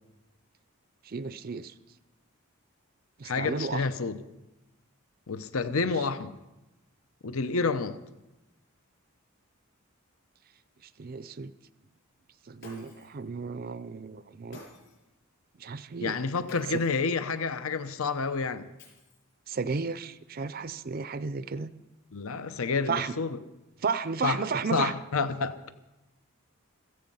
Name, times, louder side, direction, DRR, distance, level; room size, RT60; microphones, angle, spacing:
voice 1, 1.0-1.7 3.2-3.9 5.8-5.9 11.0-11.5 12.5-14.6 15.6-16.1 19.5-21.7 22.9-23.1 23.8-24.9, right 5 dB, 40° right, 14 dB, 0.5 m, -33 dB
voice 2, 3.2-4.2 5.3-6.3 7.2-8.0 16.0-18.7 22.1-23.4 24.2-24.4 24.7-25.7, left 4 dB, 70° left, 12 dB, 0.8 m, -29 dB
Shatter, 12.6-13.2 14.5-15.1 16.5-17.1 18.8-19.4, left 2 dB, 55° left, 6.3 m, -51 dB
16.0 x 14.5 x 5.5 m, 1.0 s
head